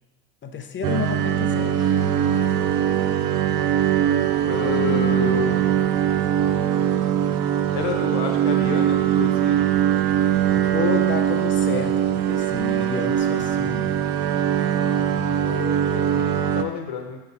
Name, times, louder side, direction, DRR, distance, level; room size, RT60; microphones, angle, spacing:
voice 1, 0.4-2.4 10.5-13.9, left 5 dB, 25° left, 6 dB, 0.7 m, -31 dB
sound 1, 0.8-16.6, right 10 dB, 55° right, 0.5 m, -21 dB
voice 2, 4.4-6.0 7.7-9.6 15.0-17.2, left 8 dB, 60° left, 4 dB, 1.2 m, -30 dB
6.4 x 4.6 x 4.3 m, 1.2 s
supercardioid pair, 105°, 43 cm